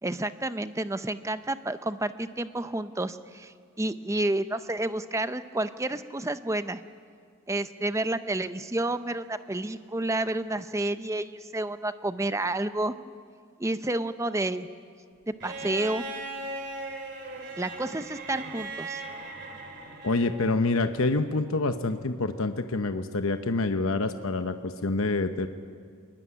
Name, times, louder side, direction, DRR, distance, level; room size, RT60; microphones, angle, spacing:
voice 1, 0.0-6.8 7.5-12.9 13.6-14.7 15.3-16.0 17.6-19.0, right 2 dB, 15° right, 11 dB, 0.6 m, -30 dB
Bowed string instrument, 15.4-20.4 21.9-22.0, right 3 dB, 50° right, 3.0 m, -38 dB
voice 2, 20.0-25.5, left 3 dB, 75° left, 8 dB, 1.0 m, -27 dB
23.0 x 19.5 x 9.9 m, 2.1 s
head